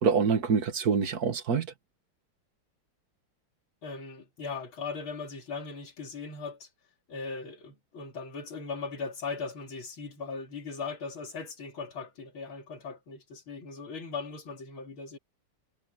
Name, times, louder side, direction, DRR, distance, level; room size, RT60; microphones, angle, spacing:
voice 1, 0.0-1.7, right 6 dB, 50° right, 2.2 m, -25 dB
voice 2, 3.8-6.7 7.1-15.2, left 4 dB, 85° left, 3.6 m, -39 dB
omnidirectional pair, 2.2 m